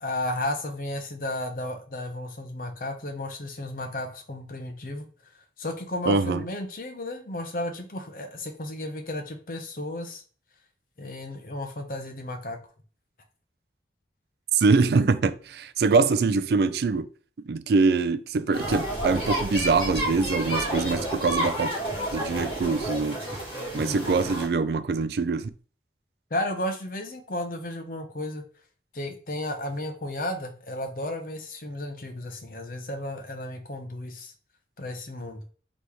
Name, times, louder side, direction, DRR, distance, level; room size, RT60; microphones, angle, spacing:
voice 1, 0.0-5.0 5.6-10.2 11.0-12.6 23.8-24.0 26.3-28.4 28.9-34.3 34.8-35.4, left 1 dB, 50° left, 0.8 m, -33 dB
voice 2, 6.1-6.4 14.5-17.1 17.5-21.7 22.1-23.2 23.7-25.5, right 4 dB, 65° right, 0.4 m, -23 dB
sound 1, 18.5-24.5, right 1 dB, 30° left, 2.1 m, -30 dB
4.0 x 3.0 x 3.4 m
head